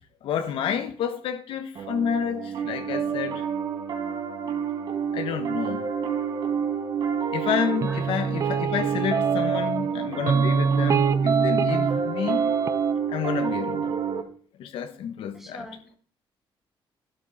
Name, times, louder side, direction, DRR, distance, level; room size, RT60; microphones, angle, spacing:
voice 1, 0.2-3.5 5.1-5.8 7.3-12.5 13.1-14.0 14.6-15.7, left 8 dB, 80° left, 1.3 m, -29 dB
Piano, 1.7-14.2, right 7 dB, 55° right, 1.8 m, -29 dB
voice 2, 2.4-2.7 7.9-8.2 15.3-16.0, equal, 5° right, 1.8 m, -44 dB
sound 1, 7.8-9.9 10.3-12.0 12.3-12.9, right 6 dB, 35° right, 0.5 m, -24 dB
12.0 x 11.0 x 4.2 m
cardioid pair, 175°, 9 cm